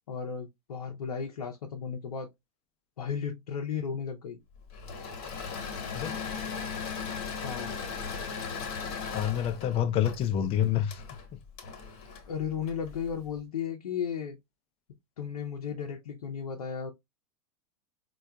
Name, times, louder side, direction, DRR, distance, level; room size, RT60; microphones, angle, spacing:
voice 1, 0.1-2.3 3.0-4.4 7.4-7.8 12.3-14.4 15.2-16.9, left 7 dB, 75° left, 0.6 m, -34 dB
Engine / Mechanisms, 4.7-13.1, left 5 dB, 45° left, 1.1 m, -37 dB
voice 2, 9.1-11.0, left 10 dB, 30° left, 0.5 m, -27 dB
4.3 x 2.3 x 2.2 m
hypercardioid pair, 100°, 19 cm